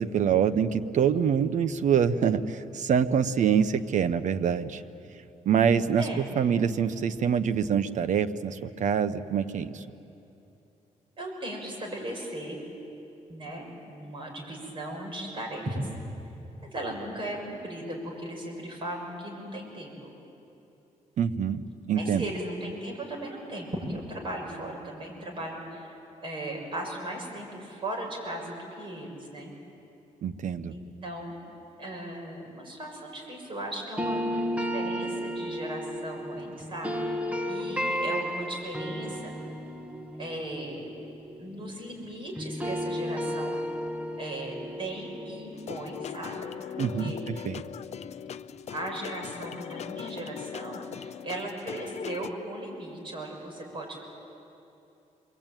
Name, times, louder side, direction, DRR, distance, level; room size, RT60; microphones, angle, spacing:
voice 1, 0.0-4.8 5.4-9.8 21.2-21.6 21.9-22.2 30.2-30.7 46.8-47.6, right 7 dB, 65° right, 11 dB, 1.1 m, -25 dB
voice 2, 11.2-12.6 13.3-15.9 16.6-20.1 21.9-29.5 30.7-31.4 31.8-37.2 37.5-39.3 40.2-40.8 41.4-43.6 44.2-46.5 47.0-47.2 48.7-54.0, right 1 dB, 40° right, 0 dB, 7.0 m, -37 dB
sound 1, 34.0-42.1 42.4-47.3, equal, 10° right, 1.5 m, -34 dB
sound 2, 45.5-52.3, left 8 dB, 55° left, 0.6 m, -39 dB
27.5 x 23.0 x 9.2 m, 2.9 s
cardioid pair, 115°, 14 cm